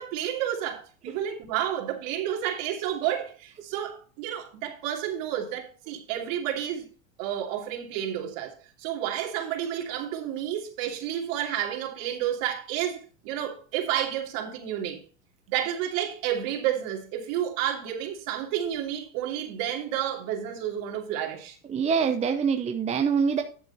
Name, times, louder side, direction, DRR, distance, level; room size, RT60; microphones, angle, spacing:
voice 1, 0.0-6.9 7.2-15.0 15.5-21.6, right 10 dB, 55° right, 2.8 m, -30 dB
voice 2, 21.7-23.4, right 6 dB, 15° right, 0.7 m, -24 dB
10.0 x 7.1 x 4.1 m
supercardioid pair, 125°, 39 cm